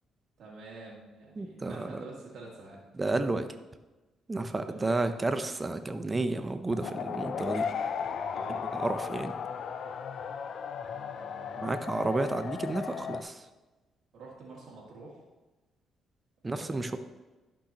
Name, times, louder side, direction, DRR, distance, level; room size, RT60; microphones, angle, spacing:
voice 1, 0.4-2.8 4.6-5.2 8.3-8.6 9.7-9.9 10.8-11.7 14.1-15.2 16.4-17.0, right 3 dB, 65° right, -5 dB, 2.2 m, -47 dB
voice 2, 1.4-1.9 3.0-3.5 4.3-7.7 8.5-9.3 11.6-13.5 16.4-17.0, right 2 dB, 25° right, 9 dB, 0.6 m, -31 dB
sound 1, 6.7-13.2, left 6 dB, 60° left, 0.4 m, -35 dB
11.5 x 5.3 x 3.0 m, 1.1 s
cardioid pair, 90°, 0 cm